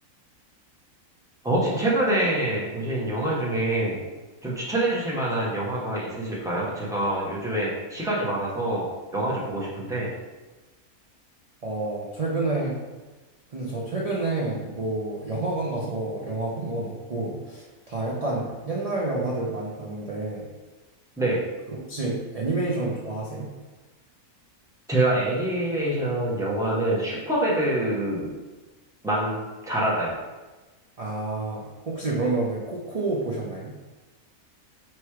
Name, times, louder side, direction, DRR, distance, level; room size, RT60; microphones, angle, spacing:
voice 1, 1.4-4.0 4.4-8.9 9.1-10.1 21.2-21.4 24.9-28.3 29.0-29.4 29.7-30.1, right 1 dB, 5° right, -7 dB, 0.7 m, -25 dB
voice 2, 11.6-12.8 13.5-20.5 21.7-23.5 31.0-33.8, right 2 dB, 65° right, -4 dB, 0.3 m, -29 dB
3.1 x 3.0 x 4.6 m, 1.2 s
omnidirectional pair, 1.5 m